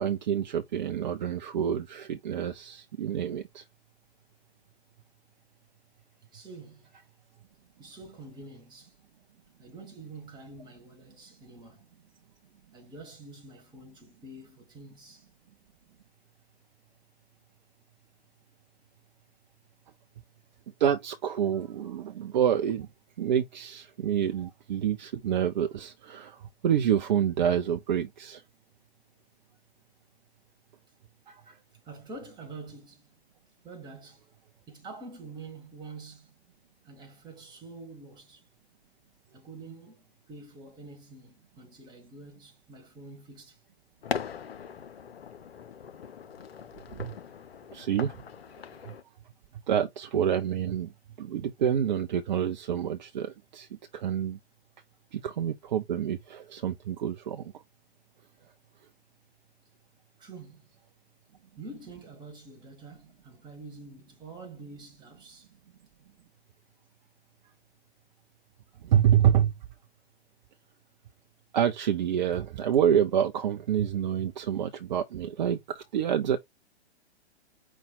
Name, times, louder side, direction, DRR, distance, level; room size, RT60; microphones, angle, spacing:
voice 1, 0.0-3.6 20.8-22.9 23.2-28.4 31.3-31.6 47.0-47.1 47.7-48.1 48.8-48.9 49.7-50.9 51.2-54.4 55.1-57.5 68.8-69.6 71.5-76.4, right 9 dB, 45° right, 0.5 m, -27 dB
voice 2, 6.3-6.9 7.8-8.9 9.6-11.9 12.7-15.3 31.8-33.1 33.6-34.2 34.7-36.4 36.8-38.4 39.3-43.6 60.2-60.7 61.6-65.5, right 3 dB, 15° right, 1.5 m, -46 dB
sound 1, 44.0-49.0, left 7 dB, 65° left, 0.7 m, -40 dB
5.4 x 2.3 x 4.0 m
figure-of-eight pair, 115°, 33 cm